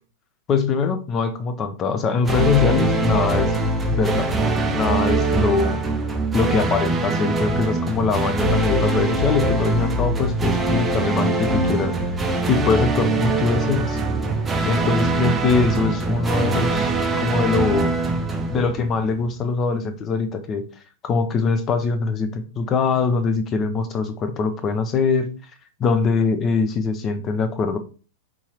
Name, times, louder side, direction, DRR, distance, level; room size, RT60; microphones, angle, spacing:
voice 1, 0.5-3.6 4.0-4.4 4.7-5.8 6.3-11.9 12.5-14.0 14.6-17.9 18.5-20.7 21.0-25.3 25.8-27.8, left 4 dB, 30° left, 0.6 m, -22 dB
sound 1, 2.3-19.3, right 2 dB, 15° right, 0.6 m, -22 dB
3.8 x 2.9 x 2.8 m
hypercardioid pair, 105°, 0 cm